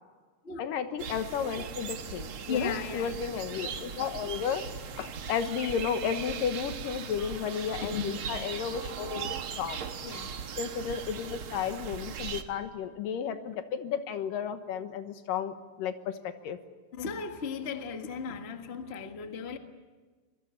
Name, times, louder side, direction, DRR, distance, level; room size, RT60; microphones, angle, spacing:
voice 1, 0.6-9.8 10.6-16.6, left 7 dB, 80° left, 9 dB, 2.9 m, -33 dB
sound 1, 1.0-12.4, right 6 dB, 55° right, 1.7 m, -39 dB
voice 2, 2.5-3.3 7.8-8.1 9.1-9.3 10.0-10.3 16.9-19.6, left 5 dB, 40° left, 6 dB, 0.8 m, -36 dB
26.0 x 21.5 x 8.4 m, 1.4 s
omnidirectional pair, 3.9 m